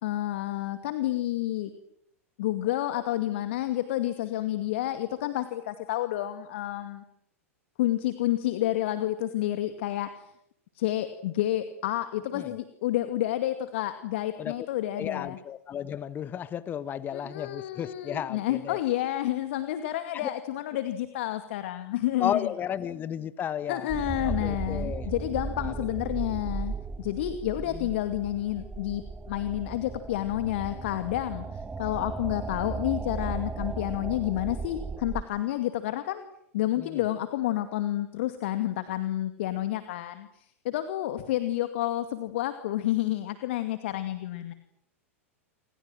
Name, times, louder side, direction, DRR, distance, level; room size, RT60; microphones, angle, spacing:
voice 1, 0.0-1.7 2.4-7.0 7.8-10.3 10.8-15.4 17.1-22.5 23.7-36.2 36.5-44.5, left 14 dB, 55° left, 9 dB, 2.2 m, -30 dB
voice 2, 15.0-18.8 20.1-20.3 22.2-23.9 24.2-25.1 25.6-25.7 27.7-27.9 36.8-37.0, left 9 dB, 25° left, 16 dB, 1.4 m, -33 dB
sound 1, 23.9-35.2, right 4 dB, 10° right, 1.6 m, -36 dB
29.0 x 26.0 x 7.6 m, 0.74 s
figure-of-eight pair, 95°, 8 cm